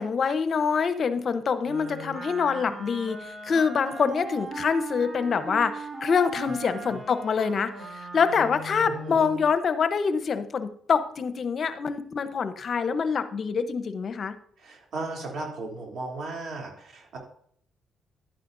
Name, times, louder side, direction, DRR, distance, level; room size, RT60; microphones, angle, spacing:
voice 1, 0.0-14.3, left 6 dB, 50° left, 11 dB, 0.9 m, -25 dB
Wind instrument woodwind instrument, 1.6-9.5, right 2 dB, 35° right, 3.5 m, -39 dB
voice 2, 8.8-9.2 14.6-17.2, right 3 dB, 65° right, 0 dB, 3.0 m, -36 dB
11.5 x 9.2 x 2.6 m, 0.65 s
cardioid pair, 90°, 0 cm